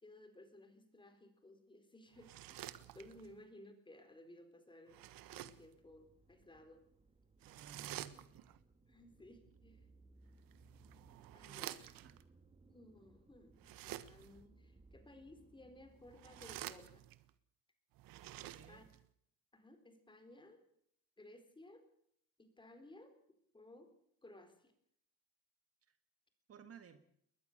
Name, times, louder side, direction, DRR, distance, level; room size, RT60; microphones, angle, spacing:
voice 1, 0.0-2.6 2.9-5.0 5.3-6.8 7.4-7.9 8.9-9.9 11.3-11.9 12.7-13.6 13.8-17.0 18.4-18.9 19.5-20.6 21.2-21.8 22.4-23.1 23.5-23.9 24.2-24.7, left 1 dB, 15° left, 7 dB, 4.0 m, -59 dB
sound 1, 2.1-3.4 4.9-5.7 7.4-8.6 10.4-12.2 13.6-14.4 16.0-17.3 17.9-19.0, right 14 dB, 80° right, 1.4 m, -50 dB
sound 2, 5.7-16.7, right 3 dB, 20° right, 1.7 m, -66 dB
voice 2, 7.4-8.5 11.4-12.2 18.4-18.8 25.9-26.0 26.5-27.0, right 7 dB, 45° right, 9 dB, 1.8 m, -57 dB
21.5 x 20.5 x 6.6 m, 0.69 s
cardioid pair, 140°, 34 cm